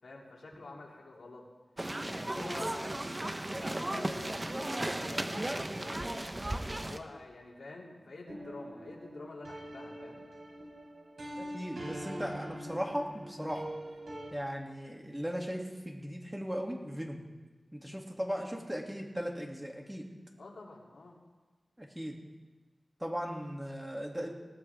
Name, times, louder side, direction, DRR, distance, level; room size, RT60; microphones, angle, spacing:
voice 1, 0.0-1.5 2.0-6.3 6.8-10.3 20.4-21.2, left 2 dB, 90° left, -2 dB, 3.1 m, -48 dB
sound 1, 1.8-7.0, right 1 dB, 25° right, 1.1 m, -35 dB
sound 2, 8.3-14.3, right 1 dB, 75° right, 4.9 m, -44 dB
voice 2, 11.4-13.6 14.3-17.2 17.7-20.0 21.8-22.2 23.0-24.3, equal, 10° right, -1 dB, 2.6 m, -37 dB
19.5 x 18.0 x 3.6 m, 1.3 s
wide cardioid pair, 85°, 0 cm